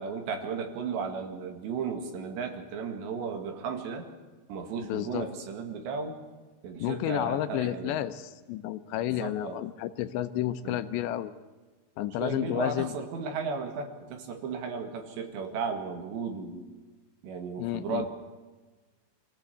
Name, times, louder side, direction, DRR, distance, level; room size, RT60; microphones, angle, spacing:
voice 1, 0.0-4.1 4.5-6.2 6.6-8.0 9.1-9.6 10.6-10.8 12.2-16.7 17.2-18.1, right 5 dB, 75° right, 5 dB, 4.2 m, -35 dB
voice 2, 4.9-5.3 6.8-11.3 12.0-12.9 17.6-18.1, left 13 dB, 80° left, 11 dB, 3.0 m, -31 dB
24.5 x 16.0 x 8.1 m, 1.3 s
omnidirectional pair, 5.1 m